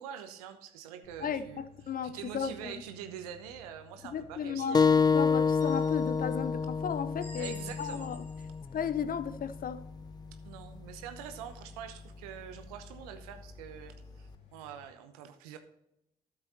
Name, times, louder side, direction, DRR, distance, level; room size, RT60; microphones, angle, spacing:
voice 1, 0.0-1.6 2.0-4.9 7.4-8.1 10.4-15.6, right 9 dB, 85° right, 0.8 m, -45 dB
sound 1, 1.0-14.8, left 7 dB, 65° left, 3.4 m, -57 dB
voice 2, 1.2-2.7 4.0-4.8 5.1-8.2 8.7-9.8, left 7 dB, 50° left, 0.8 m, -35 dB
sound 2, 4.7-9.9, left 5 dB, 20° left, 0.4 m, -28 dB
sound 3, 5.6-6.4 7.2-8.7, right 2 dB, 40° right, 2.3 m, -50 dB
13.0 x 7.0 x 2.8 m
hypercardioid pair, 40°, 19 cm